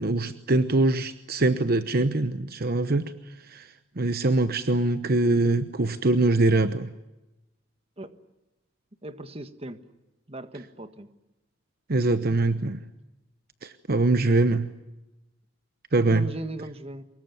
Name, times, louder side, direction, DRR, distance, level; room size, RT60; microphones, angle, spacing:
voice 1, 0.0-3.1 3.5-3.7 4.0-6.9 11.9-12.8 13.6-14.7 15.9-16.2, right 2 dB, 55° right, 11 dB, 1.0 m, -23 dB
voice 2, 9.0-9.8 10.3-11.1 16.1-17.0, right 1 dB, 30° right, 10 dB, 1.5 m, -37 dB
24.0 x 21.5 x 9.5 m, 0.99 s
head